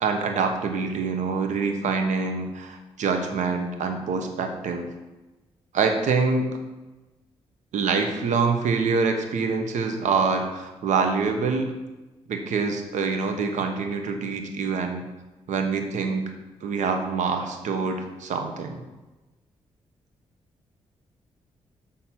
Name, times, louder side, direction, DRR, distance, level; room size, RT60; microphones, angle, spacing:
voice 1, 0.0-4.9 5.7-6.6 7.7-11.7 12.3-15.0 15.5-16.3 16.6-18.8, right 4 dB, 70° right, 5 dB, 1.0 m, -25 dB
6.8 x 3.6 x 5.7 m, 1.1 s
supercardioid pair, 45°, 13 cm